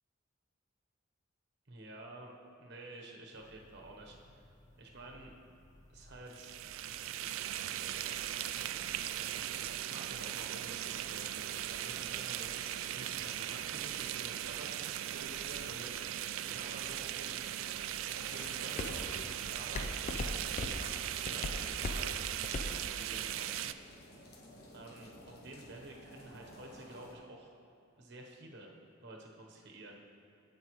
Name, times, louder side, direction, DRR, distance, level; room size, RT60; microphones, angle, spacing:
voice 1, 1.7-2.3 2.6-4.4 4.8-5.3 5.9-6.6 9.3-17.5 18.2-22.2 22.6-23.7 24.7-27.5 28.0-28.7 29.0-30.0, right 2 dB, 55° right, 0 dB, 1.1 m, -50 dB
sound 1, 3.3-22.8, left 2 dB, 35° left, 0.5 m, -47 dB
sound 2, 6.3-23.7, right 11 dB, 80° right, 0.3 m, -38 dB
sound 3, 19.1-27.1, left 1 dB, 50° left, 1.0 m, -57 dB
15.5 x 5.2 x 3.1 m, 2.7 s
head